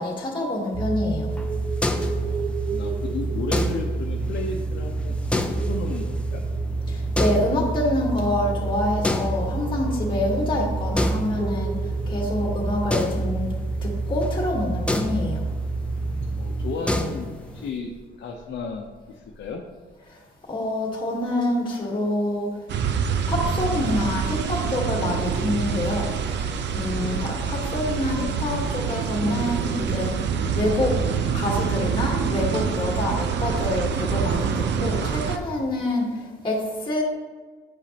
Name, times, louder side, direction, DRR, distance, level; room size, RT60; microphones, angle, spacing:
voice 1, 0.0-1.3 6.9-11.8 12.1-13.5 13.8-15.4 20.1-20.2 20.5-22.5 23.3-26.3 26.7-30.2 30.5-31.0 31.3-37.0, left 1 dB, 25° left, -1 dB, 1.4 m, -26 dB
sound 1, 0.7-16.7, right 3 dB, 30° right, 0.7 m, -28 dB
sound 2, 1.3-17.7, left 1 dB, 5° left, 0.6 m, -31 dB
voice 2, 2.7-6.4 16.4-17.3 17.5-17.9 18.2-18.9 19.2-19.6 26.9-27.3 36.4-36.5, left 4 dB, 60° left, 1 dB, 0.8 m, -34 dB
sound 3, 22.7-35.4, right 6 dB, 65° right, 0.6 m, -26 dB
9.2 x 5.0 x 2.9 m, 1.4 s
cardioid pair, 90°, 20 cm